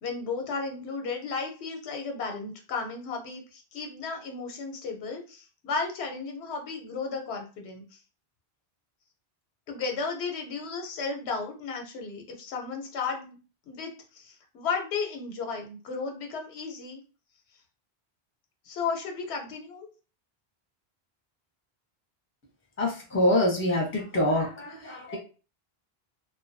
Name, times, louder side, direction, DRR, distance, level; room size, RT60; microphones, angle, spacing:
voice 1, 0.0-7.8 9.7-13.4 13.7-17.0 18.7-19.9, left 4 dB, 90° left, 3 dB, 0.9 m, -34 dB
voice 2, 22.8-25.2, left 1 dB, 15° left, -1 dB, 0.6 m, -25 dB
2.3 x 2.2 x 2.5 m, 0.35 s
omnidirectional pair, 1.1 m